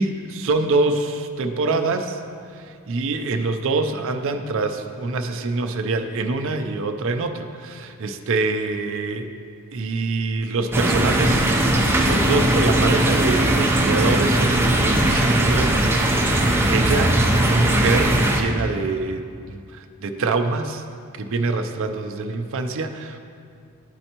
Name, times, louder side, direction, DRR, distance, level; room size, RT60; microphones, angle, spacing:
voice 1, 0.0-2.2 2.9-9.3 9.7-15.9 16.7-20.8 21.2-23.2, right 3 dB, 65° right, 7 dB, 0.5 m, -25 dB
sound 1, 10.7-18.4, right 1 dB, 10° right, 0.6 m, -19 dB
11.5 x 4.4 x 2.9 m, 2.3 s
head